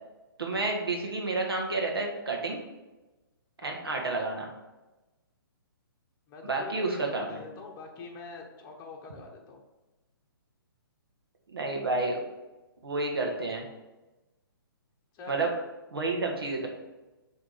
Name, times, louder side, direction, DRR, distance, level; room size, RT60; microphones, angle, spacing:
voice 1, 0.4-2.6 3.6-4.5 6.4-7.4 11.5-12.2 12.8-13.6 15.3-15.5 15.9-16.7, right 3 dB, 80° right, 0 dB, 1.6 m, -30 dB
voice 2, 6.3-9.6 15.1-15.5, left 4 dB, 25° left, 0 dB, 1.2 m, -44 dB
6.4 x 3.6 x 5.0 m, 1.1 s
hypercardioid pair, 135°, 12 cm